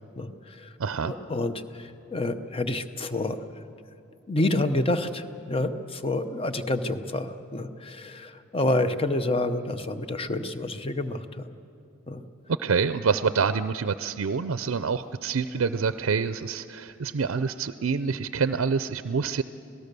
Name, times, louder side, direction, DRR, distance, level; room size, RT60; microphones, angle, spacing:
voice 1, 0.2-0.7 1.0-3.6 4.3-11.5 12.1-12.2, left 2 dB, 30° left, 10 dB, 0.8 m, -28 dB
voice 2, 0.8-1.1 12.6-19.4, right 5 dB, 85° right, 12 dB, 0.5 m, -27 dB
27.0 x 18.5 x 6.8 m, 2.8 s
head